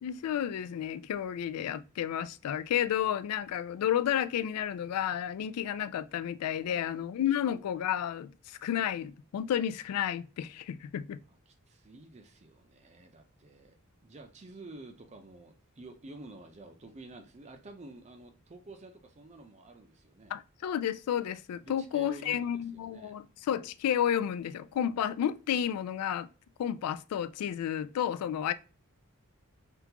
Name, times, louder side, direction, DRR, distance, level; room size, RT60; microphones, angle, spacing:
voice 1, 0.0-11.2 20.3-26.3 26.6-28.5, left 10 dB, 90° left, 0.3 m, -31 dB
voice 2, 6.5-7.4 11.3-13.8 14.0-20.3 21.6-23.2, right 2 dB, 30° right, 0.5 m, -50 dB
3.6 x 2.3 x 2.8 m
head